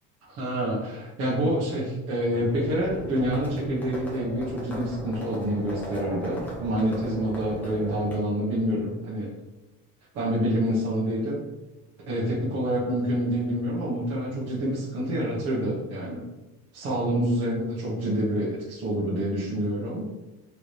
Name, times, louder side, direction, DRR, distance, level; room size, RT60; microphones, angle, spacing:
voice 1, 0.3-9.3 10.1-11.4 12.1-16.2 16.7-20.1, equal, 50° right, -7 dB, 1.3 m, -27 dB
Livestock farm animals working animals, 2.4-8.1, right 1 dB, 5° left, 1.1 m, -38 dB
3.9 x 3.7 x 3.1 m, 1.0 s
cardioid pair, 155°, 33 cm